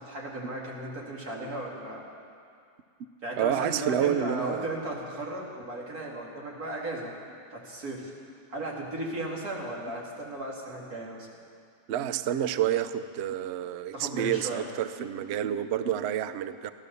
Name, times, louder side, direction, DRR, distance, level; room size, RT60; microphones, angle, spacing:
voice 1, 0.0-2.0 3.2-7.1 7.5-8.1 8.5-11.3 13.9-14.7, right 1 dB, 60° right, -3 dB, 2.8 m, -35 dB
voice 2, 3.4-4.8 11.9-16.7, right 10 dB, 90° right, 12 dB, 0.5 m, -29 dB
15.5 x 12.5 x 6.8 m, 2.3 s
omnidirectional pair, 1.8 m